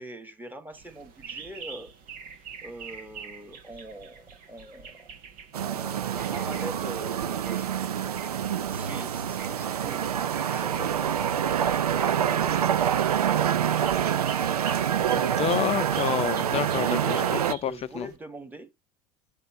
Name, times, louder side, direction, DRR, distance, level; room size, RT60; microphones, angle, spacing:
voice 1, 0.0-1.9 2.6-5.1 5.6-7.9 8.7-13.3 17.0-18.7, right 1 dB, 10° right, 2.1 m, -43 dB
sound 1, 0.7-18.2, right 6 dB, 50° right, 2.0 m, -45 dB
sound 2, 5.5-17.5, right 9 dB, 85° right, 0.5 m, -26 dB
voice 2, 15.1-18.1, left 10 dB, 35° left, 0.7 m, -29 dB
8.7 x 4.1 x 4.5 m
hypercardioid pair, 75°, 19 cm